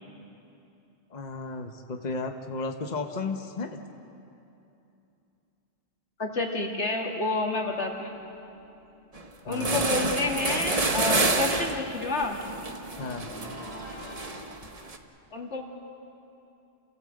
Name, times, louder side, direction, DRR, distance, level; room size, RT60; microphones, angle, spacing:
voice 1, 1.1-3.8 9.5-9.8 13.0-13.3, left 3 dB, 40° left, 4 dB, 1.2 m, -34 dB
voice 2, 6.2-8.2 9.4-12.4 15.3-15.6, left 2 dB, 85° left, 0 dB, 2.6 m, -29 dB
sound 1, 7.4-9.7 10.1-14.3, equal, 70° right, 5.9 m, -47 dB
sound 2, 9.2-9.3 9.5-15.0, right 2 dB, 35° right, 1.2 m, -28 dB
29.0 x 16.0 x 7.7 m, 2.8 s
omnidirectional pair, 1.1 m